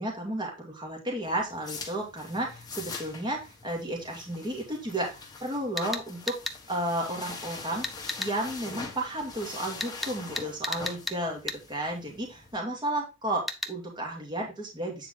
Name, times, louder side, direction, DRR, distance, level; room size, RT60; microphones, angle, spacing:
voice 1, 0.0-6.4 6.7-7.9 8.2-15.1, right 1 dB, 25° right, -1 dB, 2.4 m, -33 dB
sound 1, 1.2-12.6, left 4 dB, 20° left, 1.7 m, -43 dB
sound 2, 5.4-5.5 5.8-6.6 7.8-8.3 9.8-11.2 11.5-11.6 13.5-13.7, left 1 dB, ahead, 0.8 m, -33 dB
9.0 x 4.5 x 3.8 m, 0.26 s
head